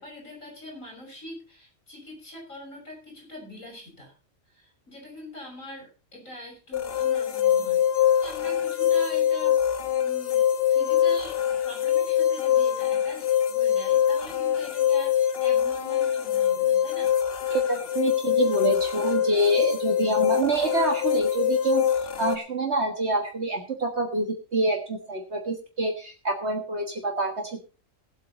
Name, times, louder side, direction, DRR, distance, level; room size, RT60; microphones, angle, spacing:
voice 1, 0.0-4.1 4.5-9.6 10.0-10.4 10.7-11.4 11.6-17.1, left 1 dB, 80° left, 0 dB, 6.7 m, -43 dB
sound 1, 6.7-22.4, left 10 dB, 50° left, 1.1 m, -24 dB
voice 2, 17.5-21.9 22.2-27.6, right 2 dB, 55° right, 3 dB, 1.8 m, -26 dB
18.5 x 8.1 x 4.1 m, 0.34 s
omnidirectional pair, 1.4 m